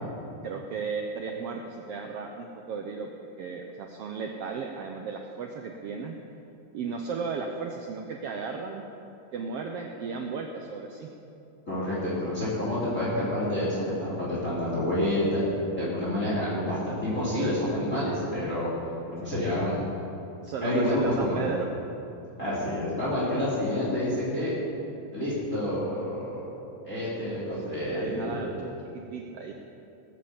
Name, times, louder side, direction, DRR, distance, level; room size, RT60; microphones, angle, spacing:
voice 1, 0.4-3.1 3.4-6.2 6.7-8.8 9.3-11.1 20.4-21.7 23.3-23.4 27.7-29.5, right 5 dB, 80° right, 2 dB, 1.3 m, -35 dB
voice 2, 11.7-15.4 15.8-18.7 19.1-19.8 20.6-21.4 22.4-24.6 25.1-26.4 26.8-28.4, left 1 dB, 25° left, -8 dB, 3.2 m, -28 dB
18.5 x 7.7 x 7.0 m, 2.8 s
omnidirectional pair, 3.7 m